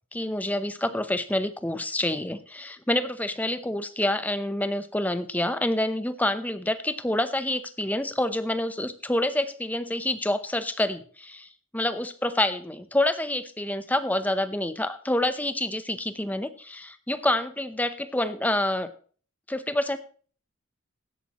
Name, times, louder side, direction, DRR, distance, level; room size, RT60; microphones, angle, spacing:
voice 1, 0.1-18.9 19.5-20.0, left 1 dB, 10° left, 11 dB, 0.7 m, -27 dB
16.0 x 11.5 x 3.1 m, 0.42 s
head